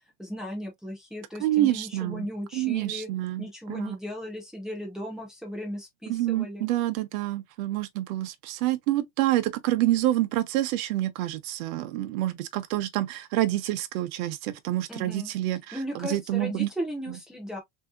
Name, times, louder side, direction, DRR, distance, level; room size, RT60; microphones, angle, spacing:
voice 1, 0.2-3.1 3.4-6.7 14.9-15.3 15.7-17.6, equal, ahead, 0.4 m, -36 dB
voice 2, 1.4-2.3 2.5-4.0 6.1-16.7 17.1-17.2, right 15 dB, 65° right, 0.7 m, -27 dB
3.4 x 2.7 x 2.3 m
supercardioid pair, 170°, 44 cm